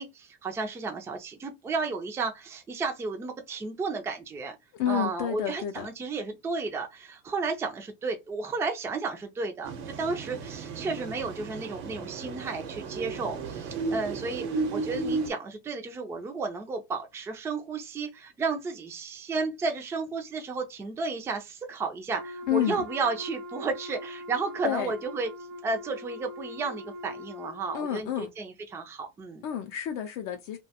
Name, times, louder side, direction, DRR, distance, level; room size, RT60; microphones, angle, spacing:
voice 1, 0.0-4.6 4.9-9.7 10.0-25.3 25.6-29.4, right 4 dB, 10° right, 0.3 m, -33 dB
voice 2, 4.7-5.9 22.5-22.8 24.6-24.9 27.7-28.3 29.4-30.6, left 10 dB, 55° left, 0.4 m, -29 dB
sound 1, 9.6-15.3, right 4 dB, 85° right, 0.8 m, -34 dB
Wind instrument woodwind instrument, 22.1-27.9, left 1 dB, 60° right, 0.6 m, -42 dB
2.3 x 2.2 x 2.7 m
supercardioid pair, 135°, 32 cm